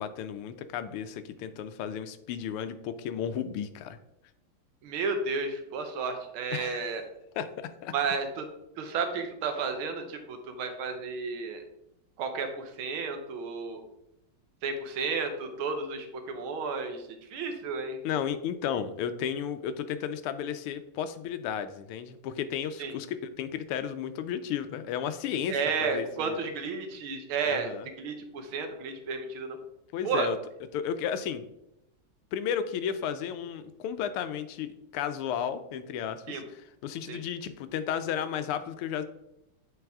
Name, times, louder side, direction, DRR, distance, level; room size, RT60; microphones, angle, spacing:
voice 1, 0.0-4.0 6.5-6.9 7.4-7.9 18.0-26.5 27.4-27.9 29.9-30.4 30.7-31.4 32.3-39.0, left 8 dB, 85° left, 11 dB, 1.5 m, -33 dB
voice 2, 4.8-7.0 7.9-8.5 8.8-11.6 12.2-13.8 14.6-17.0 17.3-18.0 22.8-22.9 25.5-27.7 28.0-29.6 30.0-30.3 36.3-36.4 37.1-37.2, right 5 dB, 75° right, 6 dB, 1.7 m, -32 dB
7.9 x 4.2 x 3.5 m, 0.83 s
omnidirectional pair, 2.4 m